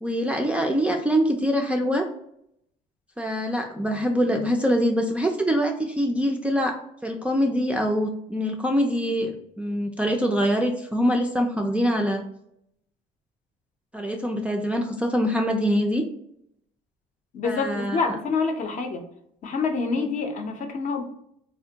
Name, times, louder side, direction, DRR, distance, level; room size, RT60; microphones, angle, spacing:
voice 1, 0.0-2.1 3.2-12.2 13.9-16.0 17.4-18.0 20.0-20.1, equal, 5° right, 1 dB, 0.3 m, -24 dB
voice 2, 17.3-19.0 19.4-21.0, left 4 dB, 45° left, 4 dB, 0.6 m, -27 dB
3.3 x 2.1 x 2.7 m, 0.73 s
cardioid pair, 110°, 17 cm